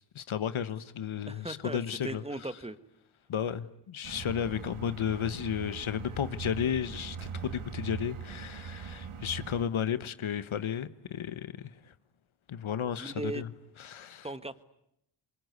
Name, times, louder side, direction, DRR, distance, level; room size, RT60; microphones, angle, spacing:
voice 1, 0.0-2.5 3.3-11.9 12.5-13.5 13.8-14.3, left 8 dB, 70° left, 1.2 m, -33 dB
voice 2, 1.3-2.8 13.0-13.4 14.2-14.6, right 2 dB, 10° right, 1.5 m, -38 dB
sound 1, 4.0-9.6, right 6 dB, 80° right, 2.5 m, -41 dB
27.5 x 22.5 x 9.5 m
cardioid pair, 85°, 49 cm